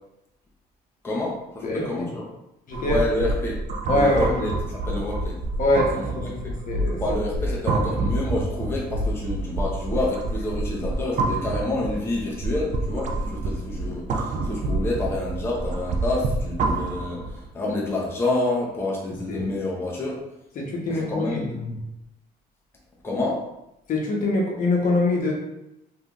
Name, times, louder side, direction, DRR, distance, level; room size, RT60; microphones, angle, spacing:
voice 1, 1.0-2.2 2.8-3.6 3.9-6.5 7.0-20.2 20.9-21.5 23.0-23.4, left 2 dB, 15° left, -4 dB, 0.7 m, -28 dB
voice 2, 2.7-3.0 3.9-4.4 5.6-6.4 6.7-7.0 19.3-19.4 20.6-21.8 23.9-25.3, left 2 dB, 55° left, -1 dB, 0.9 m, -24 dB
sound 1, 2.7-17.4, right 2 dB, 45° right, 0.4 m, -28 dB
3.3 x 2.6 x 2.4 m, 0.88 s
cardioid pair, 110°, 17 cm